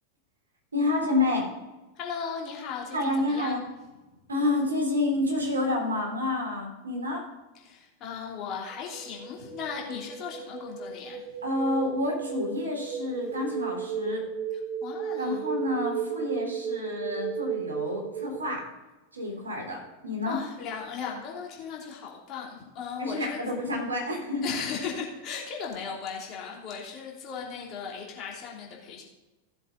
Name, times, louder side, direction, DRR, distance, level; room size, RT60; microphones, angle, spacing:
voice 1, 0.7-1.5 2.9-3.6 4.3-7.2 11.4-14.2 15.2-18.6 19.1-20.4 23.0-24.5, left 2 dB, 75° right, 0 dB, 3.5 m, -29 dB
voice 2, 1.9-3.6 4.1-4.2 7.5-11.3 14.5-15.4 20.2-23.4 24.4-29.0, left 6 dB, 35° left, -2 dB, 2.9 m, -37 dB
sound 1, 8.7-18.6, right 7 dB, 30° right, 1.1 m, -35 dB
16.0 x 7.4 x 3.8 m, 1.1 s
figure-of-eight pair, 90°, 0 cm